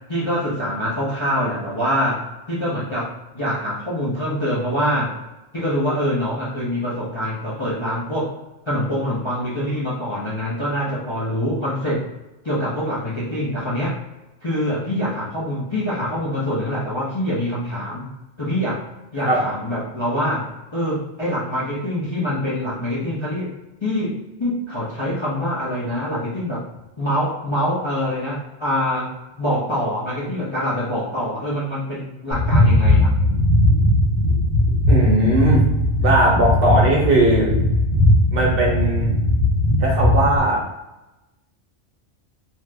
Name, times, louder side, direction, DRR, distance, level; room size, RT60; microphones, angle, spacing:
voice 1, 0.1-2.2 2.5-5.1 5.5-8.3 8.7-12.1 12.4-14.0 14.4-18.1 18.4-18.8 19.1-20.5 20.7-23.5 23.8-26.6 27.0-33.1, equal, 30° left, -8 dB, 0.5 m, -24 dB
sound 1, 32.3-40.4, left 1 dB, 75° left, 1.2 m, -18 dB
voice 2, 34.9-35.6 36.0-37.5 38.3-39.1 39.8-40.6, right 1 dB, 55° right, -2 dB, 0.9 m, -18 dB
2.7 x 2.4 x 3.2 m, 1.0 s
omnidirectional pair, 1.2 m